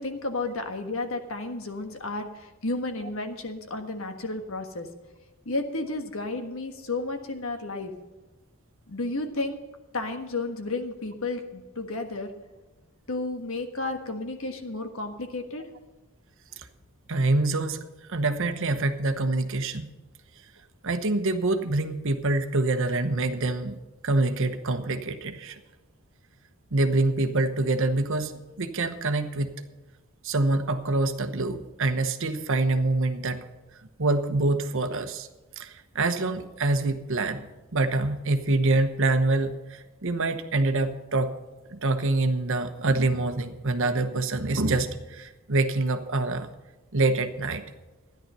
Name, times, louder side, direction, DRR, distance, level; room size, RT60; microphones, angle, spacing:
voice 1, 0.0-4.9 5.4-7.9 8.9-9.6 9.9-12.3 13.1-15.7, left 2 dB, 70° left, 6 dB, 1.5 m, -32 dB
voice 2, 17.1-17.8 18.1-19.9 20.8-23.8 24.0-25.6 26.7-28.3 28.6-29.6 30.2-33.4 34.0-35.3 35.6-41.3 41.7-46.5 46.9-47.6, right 2 dB, 65° right, 8 dB, 1.0 m, -25 dB
13.5 x 10.5 x 5.5 m, 1.2 s
head